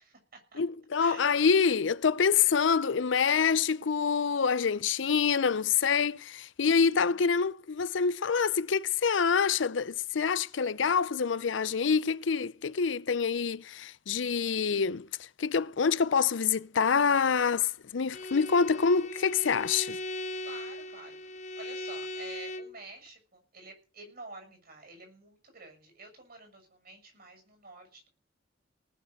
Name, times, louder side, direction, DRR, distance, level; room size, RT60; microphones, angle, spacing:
voice 1, 0.0-0.6 1.0-1.4 6.8-7.4 20.4-28.1, right 3 dB, 55° right, 6.6 m, -50 dB
voice 2, 0.6-15.1 15.4-20.0, left 6 dB, 70° left, 0.6 m, -26 dB
Bowed string instrument, 18.1-22.8, left 1 dB, 40° left, 0.8 m, -39 dB
19.0 x 6.7 x 6.5 m
head